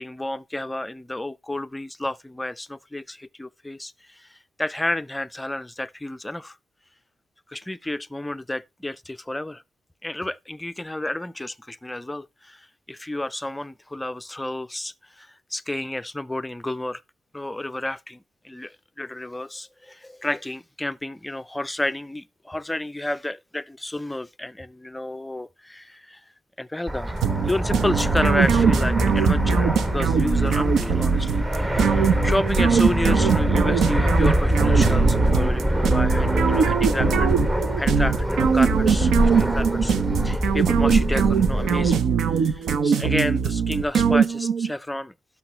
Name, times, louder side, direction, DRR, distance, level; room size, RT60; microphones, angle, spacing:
voice 1, 0.0-6.6 7.5-9.6 10.0-17.0 17.3-26.2 26.6-27.1 27.4-37.3 37.8-39.9 40.2-45.1, left 1 dB, 10° left, 0.4 m, -31 dB
Fixed-wing aircraft airplane, 26.9-42.0, equal, 15° right, 1.0 m, -23 dB
sound 1, 27.2-44.7, right 7 dB, 80° right, 0.8 m, -22 dB
12.0 x 5.9 x 3.2 m
cardioid pair, 120°, 0 cm